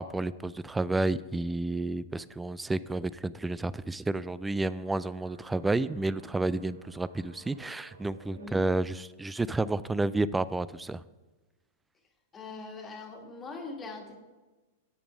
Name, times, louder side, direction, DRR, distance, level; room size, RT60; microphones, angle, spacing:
voice 1, 0.0-11.0, right 2 dB, 10° right, 17 dB, 0.3 m, -30 dB
sound 1, 4.6-8.5, right 2 dB, 90° right, 1.4 m, -56 dB
voice 2, 12.3-14.2, left 3 dB, 20° left, 2 dB, 1.8 m, -42 dB
8.8 x 6.9 x 5.0 m, 1.2 s
hypercardioid pair, 110°, 0 cm